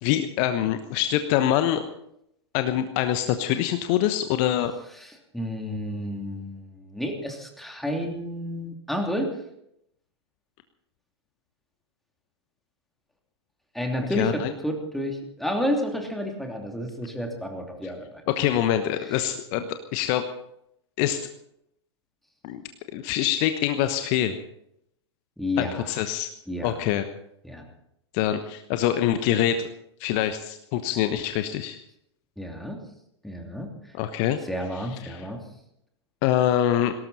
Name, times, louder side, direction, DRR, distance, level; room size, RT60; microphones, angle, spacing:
voice 1, 0.0-1.8 2.5-4.7 14.1-14.5 18.3-20.3 21.0-21.3 22.4-22.6 22.9-24.4 25.6-26.3 26.6-27.1 28.1-29.6 30.0-31.8 33.9-34.4 35.0-35.2 36.2-36.9, left 11 dB, 40° left, 9 dB, 1.1 m, -24 dB
voice 2, 5.0-9.3 13.7-18.3 19.1-19.2 25.4-25.9 26.5-26.7 27.4-27.6 32.4-32.8 33.2-33.9 34.4-35.4, left 1 dB, ahead, 2 dB, 2.8 m, -31 dB
19.5 x 17.5 x 4.2 m, 0.77 s
figure-of-eight pair, 100°, 15 cm